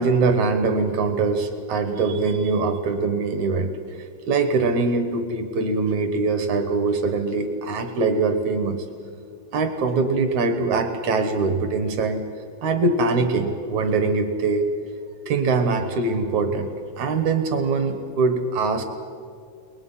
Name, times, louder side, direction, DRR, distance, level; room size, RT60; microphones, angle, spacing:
voice 1, 0.0-8.9 9.5-12.2 12.6-14.7 15.3-16.7 17.0-18.8, right 3 dB, 60° right, 7 dB, 2.4 m, -23 dB
30.0 x 20.5 x 5.7 m, 2.3 s
omnidirectional pair, 4.1 m